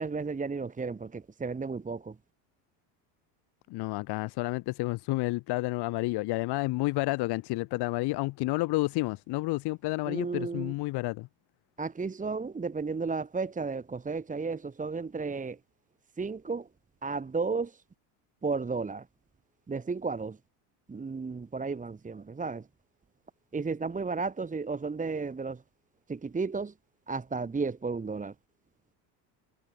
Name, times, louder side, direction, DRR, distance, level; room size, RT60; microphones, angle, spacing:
voice 1, 0.0-2.2 10.1-10.7 11.8-15.6 16.2-16.7 17.0-17.8 18.4-19.1 19.7-20.4 20.9-22.7 23.5-25.6 26.1-26.7 27.1-28.3, right 4 dB, 15° right, 1.8 m, -33 dB
voice 2, 3.7-11.3, left 21 dB, 55° left, 1.2 m, -30 dB
supercardioid pair, 100°, 47 cm